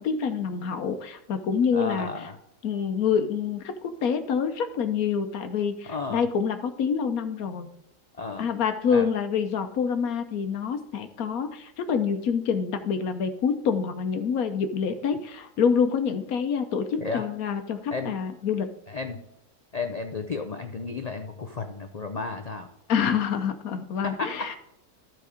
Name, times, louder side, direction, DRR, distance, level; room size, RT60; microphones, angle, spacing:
voice 1, 0.0-2.1 2.6-7.7 8.4-18.7 22.9-24.6, left 6 dB, 70° left, 8 dB, 1.2 m, -27 dB
voice 2, 1.7-2.4 5.9-6.3 8.2-8.4 8.9-9.1 17.0-17.3 17.9-18.1 18.9-19.2 19.7-22.7 24.0-24.6, left 4 dB, 85° left, 6 dB, 0.3 m, -33 dB
12.5 x 4.6 x 4.9 m, 0.85 s
omnidirectional pair, 1.7 m